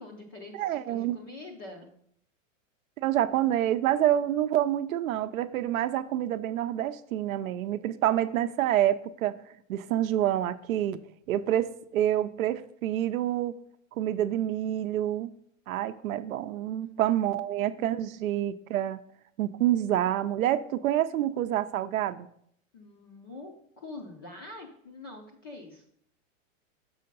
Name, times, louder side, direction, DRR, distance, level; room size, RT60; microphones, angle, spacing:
voice 1, 0.0-1.9 16.8-17.2 17.6-18.2 22.7-23.5 23.8-25.8, left 2 dB, 20° left, 1 dB, 0.4 m, -45 dB
voice 2, 0.6-1.2 3.0-9.3 9.7-11.0 11.3-13.5 14.0-15.3 15.7-19.0 19.4-22.3, right 12 dB, 90° right, 10 dB, 0.6 m, -27 dB
6.3 x 5.6 x 5.3 m, 0.68 s
supercardioid pair, 170°, 40 cm